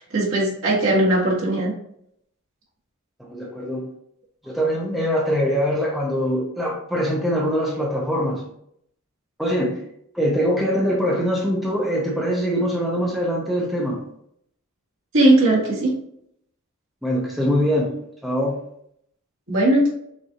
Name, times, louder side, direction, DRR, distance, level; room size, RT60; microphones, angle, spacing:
voice 1, 0.0-1.7 15.1-15.9 19.5-19.9, right 1 dB, 65° right, -5 dB, 1.8 m, -18 dB
voice 2, 3.2-3.9 4.4-8.4 9.4-9.8 10.1-14.0 17.0-17.9 18.2-18.6, equal, ahead, -3 dB, 0.7 m, -23 dB
6.3 x 2.6 x 2.9 m, 0.72 s
head